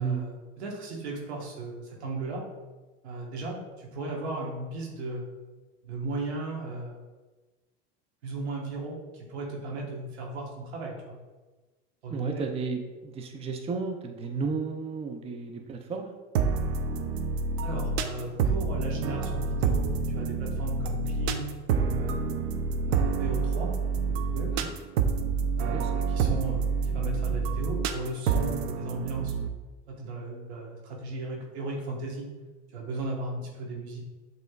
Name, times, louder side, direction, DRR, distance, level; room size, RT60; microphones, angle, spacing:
voice 1, 0.0-2.4 3.0-5.2 5.8-7.0 8.2-11.2 12.0-12.5 17.6-22.2 22.8-24.5 25.6-29.3 29.9-32.3 32.7-34.0, right 2 dB, 90° right, -1 dB, 1.3 m, -36 dB
voice 2, 12.1-16.1 24.6-24.7 25.7-26.4, right 5 dB, 20° right, 5 dB, 0.4 m, -33 dB
sound 1, 16.3-29.5, right 5 dB, 75° right, 0.5 m, -28 dB
6.9 x 3.1 x 2.3 m, 1.2 s
supercardioid pair, 95°, 32 cm